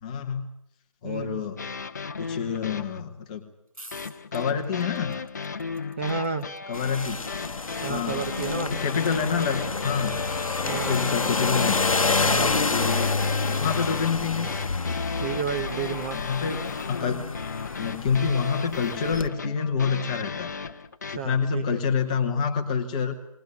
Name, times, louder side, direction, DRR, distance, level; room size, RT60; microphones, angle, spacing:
voice 1, 0.0-0.5 1.0-1.6 2.2-3.4 4.3-5.2 6.7-7.2 7.9-8.3 8.5-10.2 10.6-11.8 12.7-13.1 13.4-14.5 16.1-17.2 17.8-20.5 21.1-23.1, left 6 dB, 15° left, 4 dB, 1.2 m, -27 dB
voice 2, 1.0-1.4 6.0-6.5 7.8-8.8 10.6-11.0 12.2-12.7 15.2-16.2 21.1-21.8, right 6 dB, 20° right, 4 dB, 0.9 m, -31 dB
sound 1, 1.6-3.0 3.9-21.2, left 5 dB, 30° left, 0.8 m, -35 dB
sound 2, 3.7-17.8, right 1 dB, 90° right, 7.8 m, -53 dB
sound 3, 6.7-19.3, left 4 dB, 75° left, 0.9 m, -28 dB
20.5 x 18.0 x 9.6 m, 0.81 s
figure-of-eight pair, 165°, 18 cm